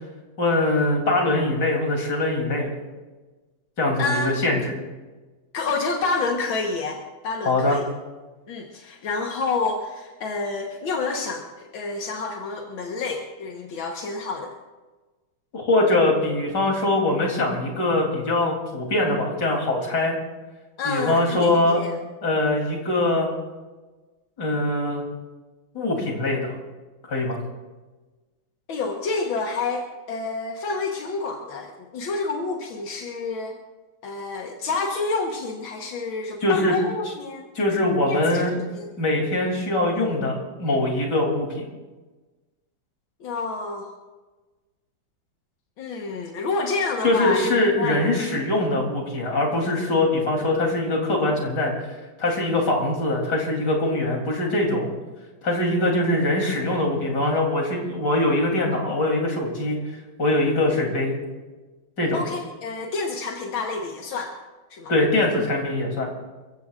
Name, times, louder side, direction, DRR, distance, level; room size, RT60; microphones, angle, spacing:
voice 1, 0.4-2.7 3.8-4.7 7.5-7.8 15.5-20.2 20.9-21.8 22.2-23.3 24.4-25.0 25.7-26.5 27.1-27.4 36.4-36.7 37.6-38.6 39.0-41.6 47.0-51.7 52.2-54.9 55.4-59.8 60.2-61.2 62.0-62.2 64.9-66.1, left 2 dB, 60° left, 0 dB, 3.9 m, -22 dB
voice 2, 4.0-4.4 5.5-7.9 8.5-14.5 20.8-22.0 28.7-33.6 34.0-37.5 38.1-38.9 43.2-43.9 45.8-47.4 47.8-48.0 62.1-64.3 64.7-64.9, left 3 dB, 90° left, 1 dB, 2.1 m, -28 dB
29.0 x 15.5 x 2.5 m, 1.2 s
omnidirectional pair, 2.1 m